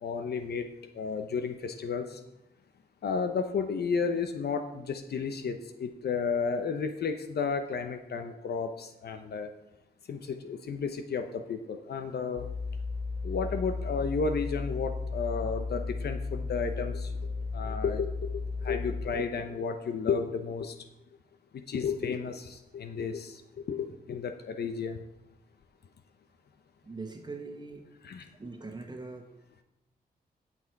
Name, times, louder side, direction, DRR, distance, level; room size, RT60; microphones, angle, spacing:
voice 1, 0.0-0.7 1.0-2.2 3.0-9.5 10.1-12.5 13.2-17.1 17.5-18.1 18.6-20.7 21.7-23.4 23.7-25.0 28.0-28.3, left 5 dB, 80° left, 7 dB, 0.9 m, -32 dB
sound 1, 12.4-19.1, left 4 dB, 45° left, 1.3 m, -34 dB
voice 2, 26.8-27.8 28.4-29.3, right 3 dB, 25° right, 4 dB, 1.4 m, -41 dB
16.5 x 6.1 x 4.7 m, 0.90 s
wide cardioid pair, 110°, 17 cm